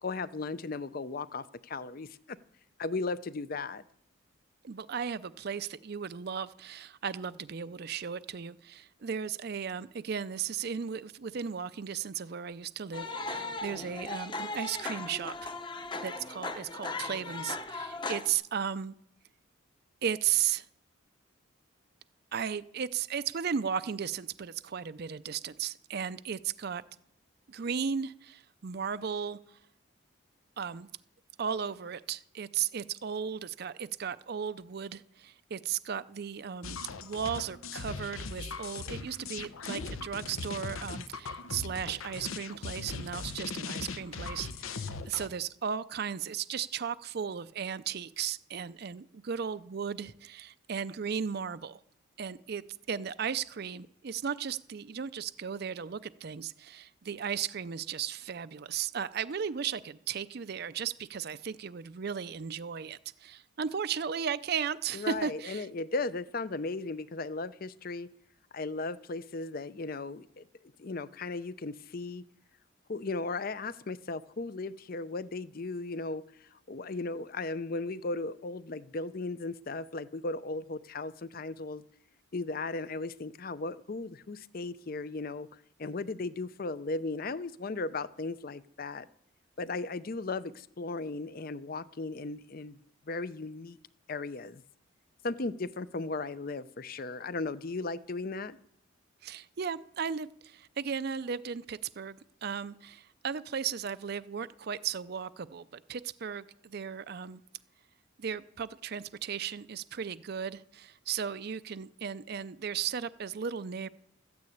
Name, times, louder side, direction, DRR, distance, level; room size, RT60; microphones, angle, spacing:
voice 1, 0.0-2.4 2.8-3.8 64.9-68.1 68.5-70.5 70.8-72.3 72.9-81.8 82.3-89.1 89.6-92.8 93.1-93.8 94.1-94.6 95.2-98.6, left 3 dB, 45° left, 16 dB, 0.5 m, -36 dB
voice 2, 4.6-15.5 16.0-18.9 20.0-20.7 22.3-26.8 27.5-29.6 30.6-30.9 31.4-51.8 52.2-65.7 99.2-107.4 108.2-113.9, right 7 dB, 50° right, 14 dB, 0.4 m, -35 dB
sound 1, 12.9-18.3, left 3 dB, 20° left, 0.9 m, -38 dB
sound 2, 36.6-45.3, left 4 dB, 80° left, 0.8 m, -39 dB
13.0 x 9.5 x 8.5 m, 0.73 s
head